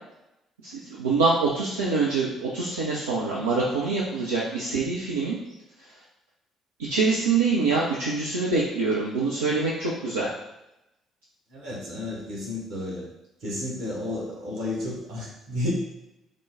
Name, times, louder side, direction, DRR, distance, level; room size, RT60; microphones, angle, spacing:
voice 1, 0.6-5.4 6.9-10.3, right 4 dB, 80° right, -5 dB, 0.4 m, -25 dB
voice 2, 11.5-13.0 13.4-15.7, left 2 dB, 60° right, -3 dB, 1.2 m, -32 dB
3.6 x 2.1 x 3.6 m, 0.89 s
figure-of-eight pair, 45°, 0 cm